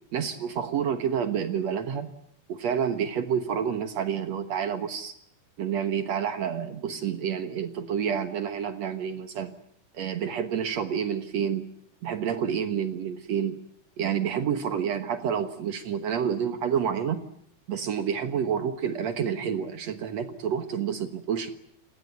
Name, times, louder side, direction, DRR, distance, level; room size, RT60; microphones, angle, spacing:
voice 1, 0.1-2.1 2.5-5.1 5.6-9.5 9.9-11.7 12.0-13.6 14.0-17.2 17.7-21.5, right 8 dB, 70° right, 9 dB, 1.6 m, -29 dB
29.5 x 18.5 x 9.2 m, 0.70 s
omnidirectional pair, 5.0 m